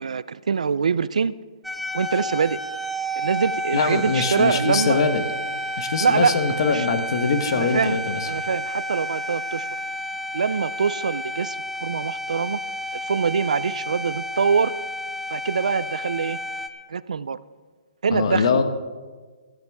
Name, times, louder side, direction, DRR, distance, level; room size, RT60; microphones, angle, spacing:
voice 1, 0.0-1.3 1.9-2.6 3.2-5.0 6.0-6.4 6.7-6.8 7.5-8.0 8.2-9.7 10.3-12.6 13.1-14.7 15.3-16.4 16.9-17.4 18.0-18.5, right 6 dB, 90° right, 18 dB, 0.5 m, -24 dB
sound 1, 1.6-16.7, equal, ahead, 0.4 m, -31 dB
voice 2, 3.7-5.3 5.8-8.3 18.1-18.6, left 4 dB, 45° left, 8 dB, 1.1 m, -22 dB
16.5 x 13.0 x 3.6 m, 1.4 s
hypercardioid pair, 170°, 4 cm